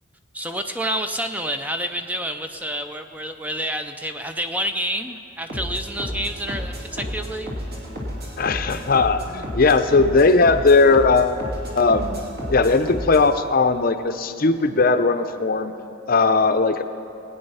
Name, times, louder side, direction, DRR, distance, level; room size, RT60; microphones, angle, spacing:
voice 1, 0.3-7.5, equal, 10° right, 7 dB, 0.5 m, -28 dB
sound 1, 5.5-13.3, equal, 50° right, 2.4 m, -32 dB
voice 2, 8.4-11.4 11.8-12.2 12.5-15.7 16.1-16.8, left 3 dB, 45° left, 9 dB, 0.6 m, -18 dB
19.0 x 9.0 x 5.5 m, 3.0 s
head